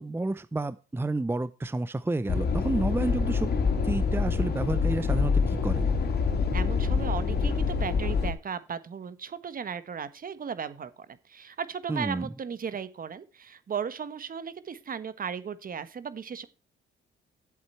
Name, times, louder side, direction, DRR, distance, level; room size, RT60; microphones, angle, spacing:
voice 1, 0.0-3.5 3.8-5.9 11.9-12.3, right 2 dB, 10° right, 15 dB, 0.6 m, -30 dB
sound 1, 2.3-8.3, left 5 dB, 55° left, 2.7 m, -26 dB
voice 2, 6.5-16.5, right 7 dB, 45° right, 14 dB, 1.5 m, -36 dB
11.5 x 8.0 x 4.5 m, 0.33 s
cardioid pair, 90°, 20 cm